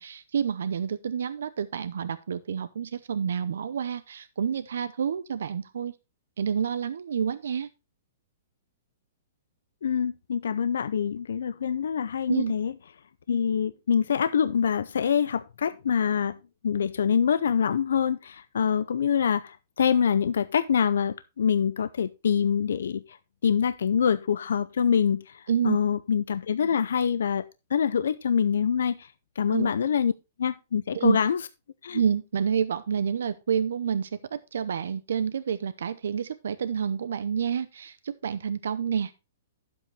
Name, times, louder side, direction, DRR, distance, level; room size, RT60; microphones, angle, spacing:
voice 1, 0.0-5.9 6.4-7.7 12.3-12.5 25.5-25.8 29.5-29.7 30.9-31.2 31.9-39.1, right 7 dB, 80° right, 0.7 m, -28 dB
voice 2, 9.8-12.7 13.3-16.4 16.6-23.2 23.4-27.4 27.7-30.1 30.4-31.4 31.8-32.0, left 7 dB, 85° left, 0.5 m, -25 dB
11.0 x 7.7 x 3.2 m
hypercardioid pair, 170°, 0 cm